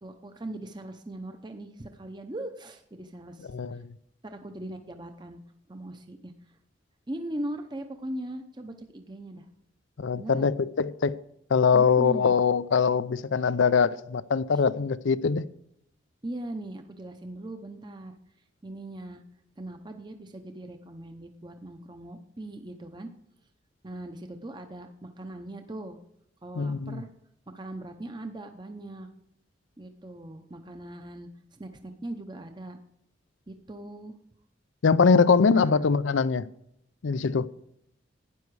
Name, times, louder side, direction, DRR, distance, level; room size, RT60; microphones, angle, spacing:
voice 1, 0.0-3.8 4.2-5.4 5.7-6.3 7.1-9.5 10.2-10.6 11.7-12.4 14.5-14.6 16.2-18.1 18.6-19.2 19.6-23.1 23.8-26.0 26.4-27.1 27.5-29.1 29.8-32.8 33.5-34.1 35.5-35.8, right 1 dB, 25° right, 0.7 m, -40 dB
voice 2, 3.5-3.9 10.0-11.2 11.5-15.5 26.6-27.0 34.8-36.5 37.0-37.5, left 5 dB, 80° left, 0.5 m, -23 dB
12.5 x 9.4 x 4.7 m
head